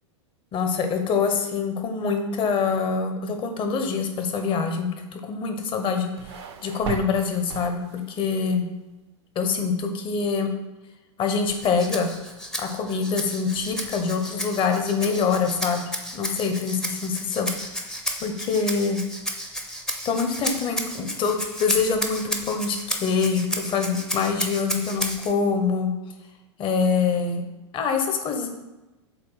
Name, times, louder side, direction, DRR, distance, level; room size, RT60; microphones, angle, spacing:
voice 1, 0.5-6.1 6.6-8.7 9.3-10.5 11.2-12.1 12.6-15.8 16.1-17.5 18.2-19.0 20.0-25.9 26.6-27.4 27.7-28.5, left 5 dB, 30° left, 5 dB, 1.0 m, -25 dB
sound 1, 5.6-8.3, right 7 dB, 55° right, 0.7 m, -37 dB
Rattle (instrument), 11.5-25.3, equal, 5° left, 0.7 m, -33 dB
7.8 x 2.6 x 5.6 m, 1.0 s
hypercardioid pair, 100°, 16 cm